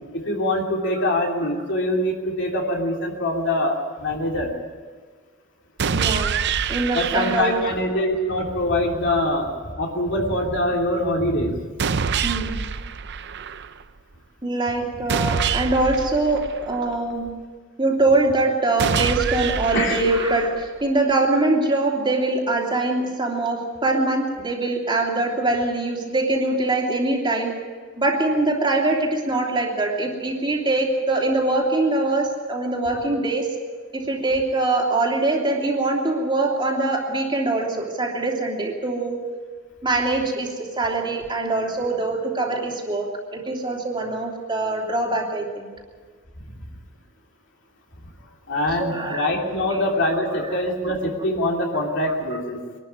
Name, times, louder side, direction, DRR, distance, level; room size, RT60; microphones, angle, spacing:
voice 1, 0.1-4.5 6.9-11.6 19.7-20.0 46.5-46.6 48.5-52.6, left 1 dB, 55° left, 0 dB, 3.1 m, -24 dB
sound 1, 5.8-7.8 11.8-13.8 15.1-17.1 18.8-20.8, right 6 dB, 55° right, 0.6 m, -26 dB
voice 2, 5.9-6.4 6.7-7.8 12.2-12.6 14.4-17.3 17.8-27.5 28.0-33.5 33.9-39.2 39.8-45.7 48.8-49.8 50.5-50.6, right 2 dB, 20° right, -1 dB, 3.0 m, -23 dB
23.5 x 12.0 x 9.6 m, 1.5 s
head